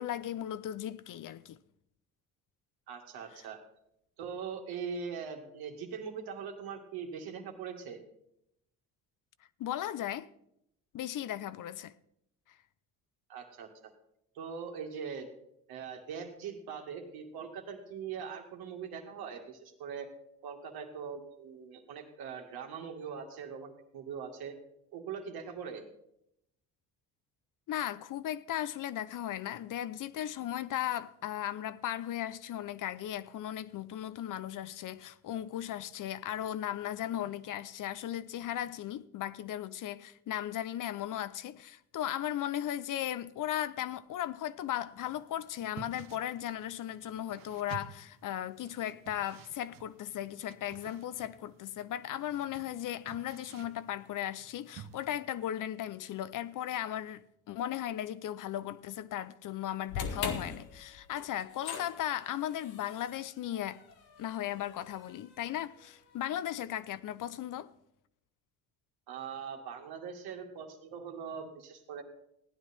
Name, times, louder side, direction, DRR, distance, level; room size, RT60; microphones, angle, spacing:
voice 1, 0.0-1.6 9.6-10.3 10.9-11.9 27.7-63.8 64.2-67.7, left 11 dB, 55° left, 0.7 m, -36 dB
voice 2, 2.9-3.6 4.2-8.0 13.3-13.9 14.3-15.3 15.7-20.1 20.4-24.5 24.9-25.8 69.1-72.0, right 6 dB, 80° right, 2.2 m, -41 dB
sound 1, 45.0-55.2, right 9 dB, 65° right, 1.0 m, -53 dB
sound 2, 59.9-66.2, left 6 dB, 80° left, 1.8 m, -42 dB
15.5 x 9.8 x 4.3 m
supercardioid pair, 80°, 37 cm